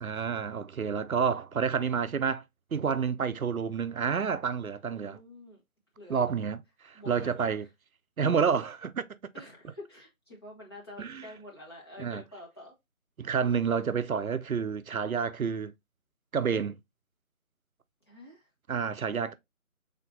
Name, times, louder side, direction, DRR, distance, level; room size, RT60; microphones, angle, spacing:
voice 1, 0.0-2.4 2.7-5.2 6.1-7.7 8.2-9.1 11.0-11.3 12.0-12.2 13.2-15.7 16.3-16.8 18.7-19.3, right 6 dB, 75° right, 0.6 m, -29 dB
voice 2, 5.0-5.6 6.0-6.2 6.9-7.5 9.3-12.7 18.1-18.5 19.3-19.4, left 1 dB, 20° left, 1.2 m, -48 dB
5.4 x 3.7 x 2.6 m
figure-of-eight pair, 155°, 42 cm